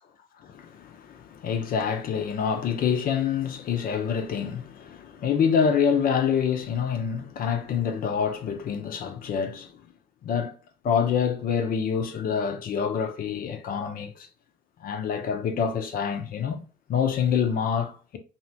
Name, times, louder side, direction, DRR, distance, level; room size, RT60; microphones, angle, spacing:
voice 1, 0.4-9.8 10.2-10.5 10.8-14.3 14.8-16.6 16.9-18.2, left 7 dB, 45° left, 0.5 m, -26 dB
2.7 x 2.1 x 2.5 m
figure-of-eight pair, 45°, 20 cm